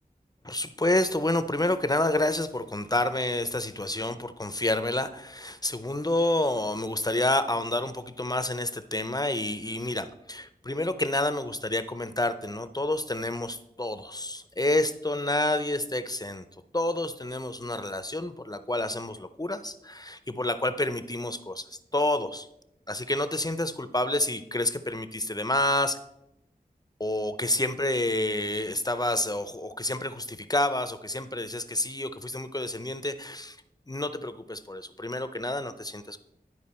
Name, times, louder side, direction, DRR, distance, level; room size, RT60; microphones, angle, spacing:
voice 1, 0.4-16.4 16.7-21.7 21.9-22.5 22.9-26.0 27.0-33.6 33.9-36.2, left 1 dB, 25° left, 11 dB, 0.5 m, -29 dB
11.0 x 4.7 x 4.3 m, 0.81 s
wide cardioid pair, 45°, 16 cm